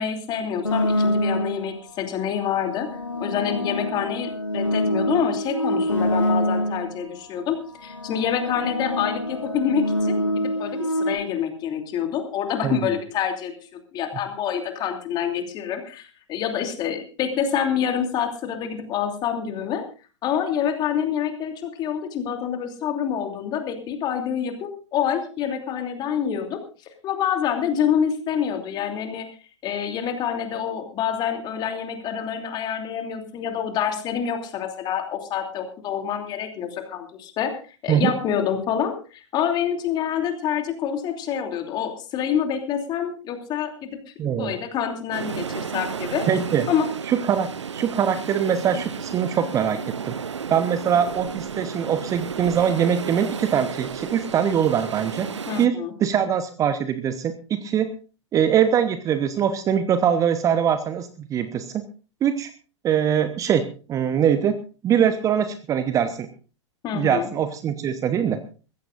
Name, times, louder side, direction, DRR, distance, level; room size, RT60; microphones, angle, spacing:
voice 1, 0.0-2.9 3.2-7.6 7.8-13.5 13.9-19.8 20.2-26.6 27.0-29.3 29.6-37.5 37.8-43.9 44.2-46.3 46.7-46.9 55.5-55.9 66.8-67.3, left 8 dB, 25° left, 5 dB, 2.9 m, -27 dB
sound 1, 0.6-1.7 2.5-7.0 7.7-11.1, left 1 dB, 85° left, 2.6 m, -25 dB
voice 2, 44.2-44.6 46.3-46.7 47.1-49.8 50.0-50.2 50.5-55.3 55.6-57.9 58.3-61.8 62.2-62.5 62.8-63.6 63.9-64.6 64.8-66.3 66.9-68.4, right 8 dB, 20° right, 12 dB, 1.0 m, -22 dB
sound 2, 45.1-55.7, right 6 dB, 70° right, 0.7 m, -33 dB
22.0 x 15.5 x 2.6 m, 0.35 s
figure-of-eight pair, 100°, 15 cm